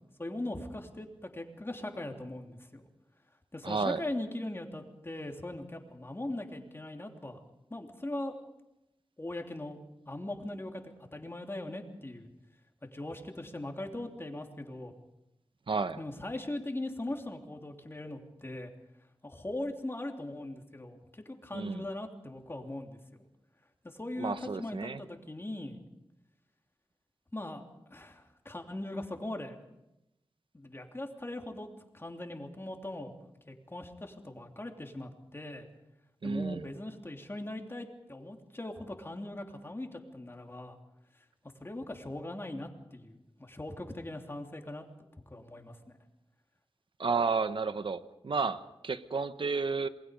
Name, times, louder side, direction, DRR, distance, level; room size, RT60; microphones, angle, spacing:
voice 1, 0.2-2.8 3.5-7.4 7.7-8.3 9.2-9.8 10.1-12.3 12.9-14.9 16.0-18.7 19.2-23.0 23.8-25.8 27.3-27.6 27.9-29.6 30.5-31.7 31.9-33.1 33.5-35.7 36.2-40.8 41.6-44.8 45.3-45.8, left 1 dB, 25° left, 3 dB, 3.3 m, -40 dB
voice 2, 3.6-4.0 15.7-16.0 21.5-21.9 24.2-25.0 36.2-36.7 47.0-49.9, right 4 dB, 65° right, 11 dB, 1.1 m, -32 dB
27.5 x 21.0 x 5.3 m, 0.90 s
wide cardioid pair, 70°, 9 cm